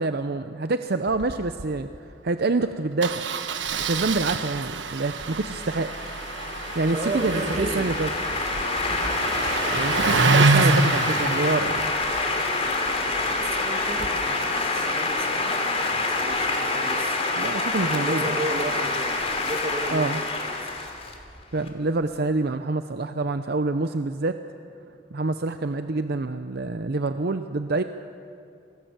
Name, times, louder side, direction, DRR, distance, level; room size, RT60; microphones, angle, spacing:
voice 1, 0.0-1.9 2.2-3.3 3.7-5.9 6.7-8.1 9.7-11.9 17.4-18.4 19.9-20.2 21.5-24.4 25.1-27.8, right 3 dB, 60° right, 9 dB, 0.7 m, -26 dB
Engine starting, 1.1-1.3 1.6-1.7 1.9-2.1 3.0-14.1, right 3 dB, 75° right, 1.3 m, -27 dB
sound 1, 5.0-21.7, left 3 dB, 35° left, 2.9 m, -27 dB
voice 2, 6.9-7.9 13.4-17.2 17.8-20.9, right 2 dB, 35° right, 5 dB, 1.7 m, -33 dB
27.0 x 19.5 x 7.3 m, 2.5 s
head